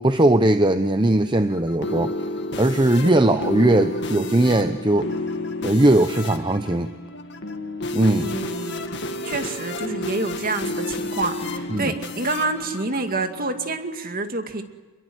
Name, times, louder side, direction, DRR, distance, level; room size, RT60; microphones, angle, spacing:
voice 1, 0.0-2.2 2.6-5.1 5.6-6.9 7.9-8.3 11.7-11.9, right 1 dB, 20° right, 9 dB, 0.8 m, -19 dB
sound 1, 1.1-13.8, left 2 dB, 55° left, 2.1 m, -31 dB
voice 2, 3.0-3.5 8.2-8.9 9.2-14.6, right 3 dB, 40° right, 6 dB, 2.3 m, -28 dB
28.5 x 22.0 x 8.0 m, 1.3 s
head